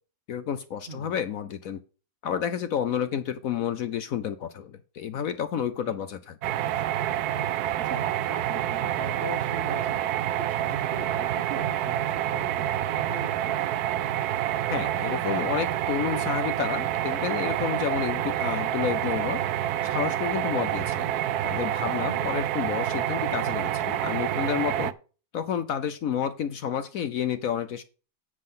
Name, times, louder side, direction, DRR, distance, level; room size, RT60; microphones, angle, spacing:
voice 1, 0.3-1.8 2.2-6.6 14.7-19.4 19.8-21.1 21.4-24.9 25.3-27.8, left 8 dB, 65° left, 11 dB, 1.0 m, -30 dB
sound 1, 6.4-24.9, right 12 dB, 70° right, 1.1 m, -28 dB
voice 2, 7.8-13.5 21.9-22.2, right 2 dB, 40° right, 8 dB, 1.2 m, -40 dB
9.6 x 7.5 x 3.8 m, 0.36 s
omnidirectional pair, 1.8 m